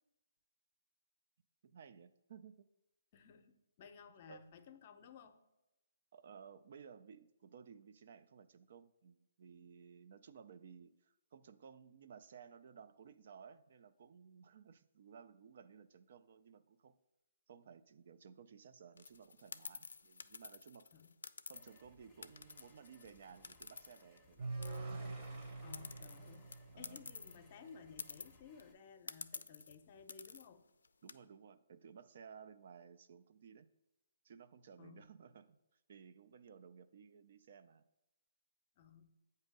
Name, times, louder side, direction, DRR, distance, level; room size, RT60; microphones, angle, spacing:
voice 1, 1.6-2.7 4.3-4.5 6.1-16.9 17.5-21.0 21.5-25.3 26.7-27.0 31.0-33.7 34.2-37.9, right 6 dB, 55° right, 11 dB, 0.4 m, -58 dB
voice 2, 3.1-5.4 20.9-21.1 25.6-30.6 34.8-35.1 38.8-39.2, left 6 dB, 40° left, 8 dB, 0.6 m, -57 dB
sound 1, 19.0-21.8 22.2-24.3 24.6-27.4 27.7-27.8 28.0-28.6 29.1-29.7 30.1-30.5 30.8-31.1, left 4 dB, 75° left, 0.3 m, -50 dB
sound 2, 21.5-28.7, left 1 dB, ahead, 0.7 m, -68 dB
sound 3, 24.4-27.6, right 3 dB, 30° right, 1.0 m, -45 dB
8.0 x 2.7 x 5.2 m, 0.96 s
hypercardioid pair, 145°, 0 cm